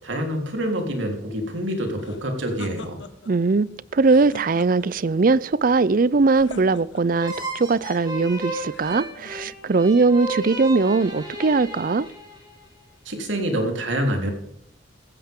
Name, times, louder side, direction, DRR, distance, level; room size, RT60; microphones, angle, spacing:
voice 1, 0.0-3.0 13.1-14.3, equal, 75° right, 3.7 m, -26 dB
sound 1, 2.0-3.4 4.0-5.1 6.3-7.3 8.7-9.6, left 2 dB, 75° left, 1.5 m, -42 dB
voice 2, 3.3-12.1, right 3 dB, 45° right, 0.5 m, -20 dB
sound 2, 7.2-12.7, right 1 dB, 20° right, 4.3 m, -34 dB
16.0 x 14.5 x 3.7 m
head